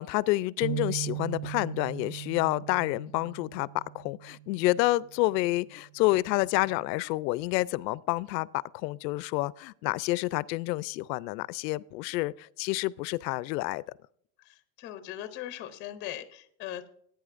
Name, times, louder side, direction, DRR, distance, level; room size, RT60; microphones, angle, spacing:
voice 1, 0.0-13.8, left 19 dB, 90° left, 0.6 m, -29 dB
sound 1, 0.6-4.9 5.4-5.6 6.4-6.9, right 15 dB, 75° right, 0.6 m, -39 dB
voice 2, 14.4-16.9, left 12 dB, 25° left, 0.6 m, -40 dB
17.0 x 9.1 x 2.5 m
supercardioid pair, 180°, 49 cm